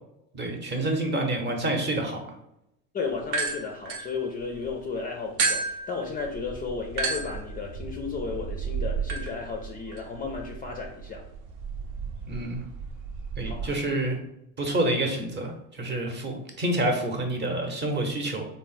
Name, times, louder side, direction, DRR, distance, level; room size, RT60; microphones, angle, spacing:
voice 1, 0.3-2.2 12.3-12.6 13.4-14.2 14.6-18.5, right 1 dB, 25° right, 3 dB, 0.8 m, -28 dB
voice 2, 2.9-11.2 13.4-13.7, left 4 dB, 25° left, 2 dB, 0.4 m, -34 dB
sound 1, 3.2-4.7 5.4-13.7, right 5 dB, 60° right, 0.7 m, -33 dB
3.5 x 2.1 x 4.0 m, 0.83 s
hypercardioid pair, 90°, 40 cm